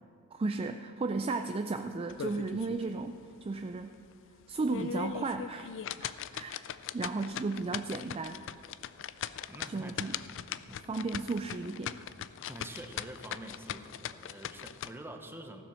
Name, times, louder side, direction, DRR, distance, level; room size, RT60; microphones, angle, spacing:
voice 1, 0.3-4.0 4.5-5.7 6.0-6.6 6.9-8.4 9.7-10.2 10.9-12.0, right 3 dB, 25° right, 7 dB, 0.4 m, -34 dB
sound 1, 2.1-2.8 3.2-3.3 3.8-3.9 4.5-14.9, left 9 dB, 60° left, 0.4 m, -40 dB
voice 2, 9.5-10.2 10.6-10.9 12.5-15.6, right 1 dB, 10° right, 5 dB, 0.9 m, -46 dB
15.5 x 7.5 x 6.2 m, 2.4 s
head